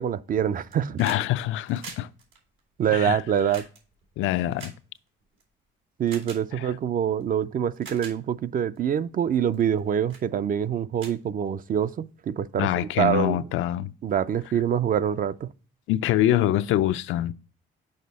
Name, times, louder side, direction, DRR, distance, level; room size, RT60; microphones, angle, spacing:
voice 1, 0.0-1.0 2.8-3.6 6.0-12.7 13.0-13.5 14.0-15.5, right 9 dB, 45° right, 0.4 m, -25 dB
sound 1, 0.5-1.3 1.5-5.4 6.1-6.4 7.2-7.3 7.7-8.2 8.8-9.0 9.5-9.8 10.1-10.3 10.6-10.7 11.0-11.9 13.1-13.2, right 4 dB, 80° right, 2.5 m, -44 dB
voice 2, 1.0-2.1 2.9-3.2 4.2-4.7 6.6-6.7 12.6-13.9 15.9-17.3, left 13 dB, 80° left, 0.4 m, -24 dB
6.5 x 5.1 x 4.0 m
cardioid pair, 90°, 20 cm